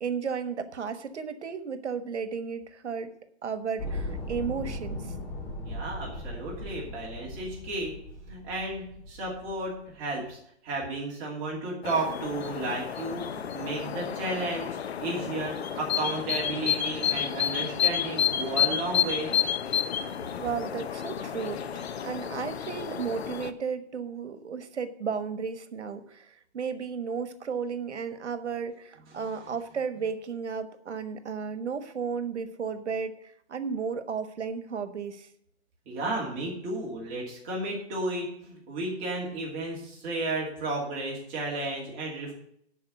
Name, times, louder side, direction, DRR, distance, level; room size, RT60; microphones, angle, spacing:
voice 1, 0.0-3.1 3.4-5.1 20.4-35.3, right 6 dB, 85° right, 11 dB, 1.3 m, -34 dB
sound 1, 3.8-10.1, left 1 dB, 5° left, 0.6 m, -38 dB
voice 2, 5.6-7.9 8.3-19.3 35.9-42.3, right 2 dB, 25° right, -3 dB, 2.6 m, -33 dB
sound 2, 11.8-23.5, left 9 dB, 65° left, 0.8 m, -30 dB
11.5 x 4.7 x 7.9 m, 0.72 s
hypercardioid pair, 155°, 34 cm